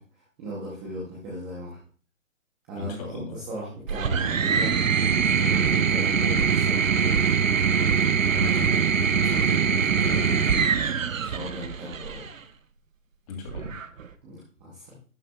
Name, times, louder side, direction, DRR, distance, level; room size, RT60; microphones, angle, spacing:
voice 1, 0.0-1.8 2.7-3.1 3.3-4.8 5.4-7.2 11.2-12.3 14.2-15.0, equal, 5° right, -6 dB, 0.7 m, -38 dB
voice 2, 2.8-3.4 8.3-10.7 13.3-13.8, left 4 dB, 30° left, 1 dB, 3.0 m, -37 dB
sound 1, 3.9-12.3 13.5-14.1, right 6 dB, 75° right, 1.0 m, -23 dB
12.0 x 8.8 x 2.3 m, 0.42 s
hypercardioid pair, 160°, 40 cm